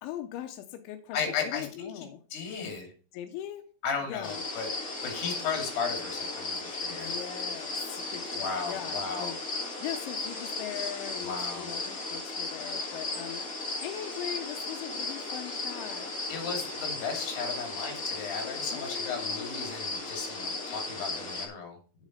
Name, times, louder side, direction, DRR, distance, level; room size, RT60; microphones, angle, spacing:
voice 1, 0.0-2.2 3.1-3.6 4.0-4.4 6.9-9.4 9.8-16.1 18.5-19.5, left 12 dB, 90° left, 6 dB, 3.2 m, -40 dB
voice 2, 1.1-1.9 2.3-2.9 3.8-4.7 5.0-7.2 8.4-9.3 11.2-11.7 16.3-21.8, left 5 dB, 65° left, 2 dB, 4.4 m, -35 dB
sound 1, 4.2-21.4, left 3 dB, 45° left, 1.1 m, -35 dB
8.4 x 7.3 x 5.2 m, 0.40 s
omnidirectional pair, 5.3 m